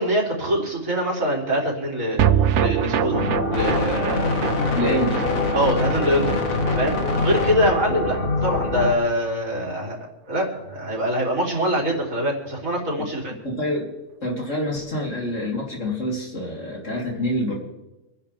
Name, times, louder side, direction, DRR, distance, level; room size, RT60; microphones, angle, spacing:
voice 1, 0.0-2.2 2.6-3.2 3.5-4.4 5.5-6.3 6.7-10.0 10.3-13.3, equal, 85° right, -2 dB, 3.9 m, -24 dB
sound 1, 2.2-8.6 8.9-9.0 9.3-9.4, right 9 dB, 65° right, 1.0 m, -25 dB
sound 2, 3.1-8.9, left 3 dB, 90° left, 2.2 m, -24 dB
voice 2, 4.7-5.2 13.4-13.9 14.2-17.5, left 1 dB, 65° left, -3 dB, 4.1 m, -26 dB
26.5 x 10.5 x 3.5 m, 1.0 s
omnidirectional pair, 1.4 m